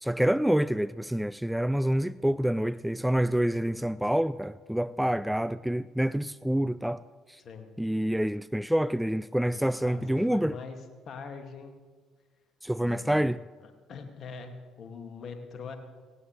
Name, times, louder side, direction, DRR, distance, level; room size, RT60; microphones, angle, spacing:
voice 1, 0.0-7.0 7.3-7.4 7.8-10.6 12.6-13.4, right 1 dB, 5° right, 0.3 m, -27 dB
voice 2, 9.5-10.8 11.1-11.7 12.8-13.3 13.9-15.8, left 5 dB, 50° left, 2.2 m, -42 dB
18.0 x 18.0 x 3.3 m
figure-of-eight pair, 50°, 0 cm